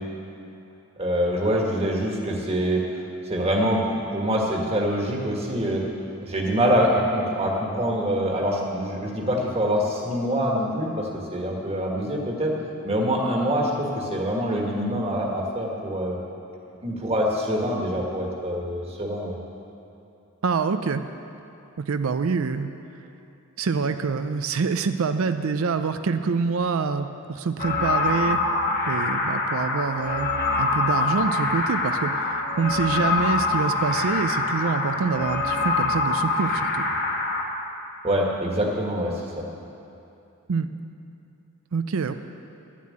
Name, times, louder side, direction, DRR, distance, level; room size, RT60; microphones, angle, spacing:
voice 1, 1.0-2.8 3.2-5.8 6.2-12.5 12.8-16.2 16.8-19.3 38.0-39.4, equal, 25° right, -1 dB, 1.6 m, -25 dB
voice 2, 20.4-21.0 21.8-22.7 23.6-28.4 28.9-30.3 30.6-36.9 40.5-40.7 41.7-42.1, right 5 dB, 65° right, 9 dB, 0.5 m, -26 dB
sound 1, 27.6-37.4, left 3 dB, 45° left, 1.4 m, -25 dB
11.5 x 7.4 x 8.7 m, 2.7 s
head